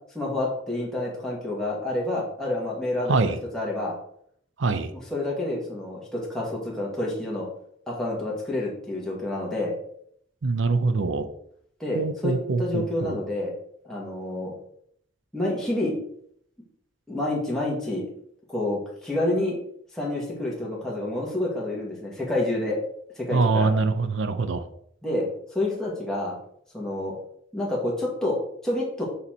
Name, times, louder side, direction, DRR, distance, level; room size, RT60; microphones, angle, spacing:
voice 1, 0.2-3.2 3.5-3.9 4.9-7.5 7.9-9.8 11.8-13.5 13.9-14.5 15.3-15.9 17.1-18.1 18.5-19.6 19.9-22.8 23.2-23.7 25.0-26.4 26.7-27.1 27.5-28.4 28.6-29.0, left 1 dB, 5° left, -5 dB, 1.7 m, -28 dB
voice 2, 4.6-4.9 10.4-11.3 11.9-13.2 23.3-24.6, right 3 dB, 75° right, 11 dB, 0.6 m, -24 dB
7.0 x 4.2 x 4.3 m, 0.67 s
head